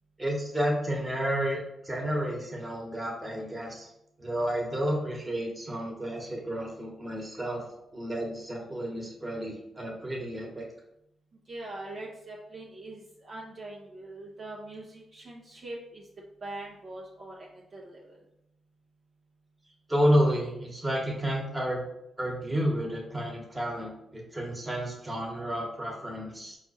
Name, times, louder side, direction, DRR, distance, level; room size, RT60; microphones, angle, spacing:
voice 1, 0.2-1.6 1.8-3.9 4.2-7.6 7.9-10.7 19.9-21.8 22.2-26.6, equal, 20° right, -1 dB, 1.4 m, -30 dB
voice 2, 11.5-16.0 16.4-18.1, right 2 dB, 50° right, -3 dB, 0.9 m, -42 dB
4.3 x 2.5 x 4.2 m, 0.82 s
supercardioid pair, 55°, 0 cm